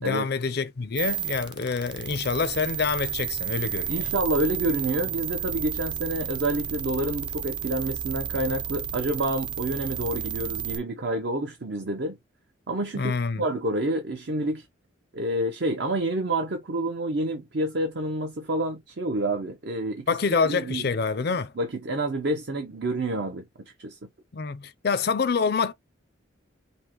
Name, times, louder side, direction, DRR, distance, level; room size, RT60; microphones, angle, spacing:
voice 1, 0.0-4.1 12.9-13.4 20.1-21.5 24.3-25.7, left 5 dB, 50° left, 0.5 m, -26 dB
sound 1, 1.0-10.8, right 8 dB, 25° right, 0.4 m, -32 dB
voice 2, 3.9-12.2 12.7-14.7 15.1-20.1 20.5-20.9 21.6-23.4 23.8-24.0, right 1 dB, 60° right, 0.7 m, -28 dB
5.3 x 2.1 x 2.9 m
head